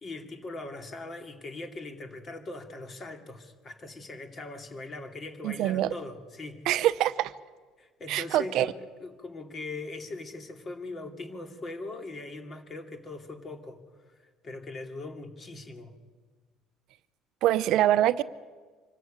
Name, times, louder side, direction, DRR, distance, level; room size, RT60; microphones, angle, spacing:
voice 1, 0.0-6.7 7.8-8.7 9.0-15.9, left 2 dB, 35° left, 5 dB, 2.6 m, -40 dB
voice 2, 5.4-5.9 6.7-7.3 8.1-8.7 17.4-18.2, right 13 dB, 70° right, 14 dB, 0.7 m, -24 dB
25.0 x 13.5 x 8.9 m, 1.4 s
cardioid pair, 110°, 0 cm